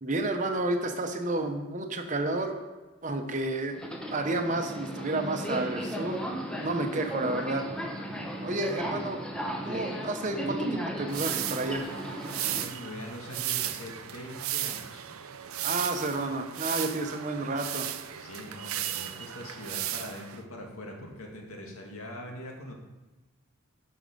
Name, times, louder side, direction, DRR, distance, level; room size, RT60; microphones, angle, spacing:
voice 1, 0.0-2.6 3.0-3.8 4.1-6.2 6.6-7.6 8.4-9.2 9.7-11.9 15.6-17.9, right 2 dB, 35° right, 5 dB, 0.9 m, -31 dB
Subway metro underground, 3.7-12.6, right 1 dB, 5° left, 0.8 m, -35 dB
sound 1, 11.1-20.4, right 12 dB, 80° right, 0.6 m, -35 dB
voice 2, 12.4-15.0 18.2-22.7, left 1 dB, 85° left, 1 dB, 2.0 m, -42 dB
11.5 x 5.6 x 5.2 m, 1.2 s
head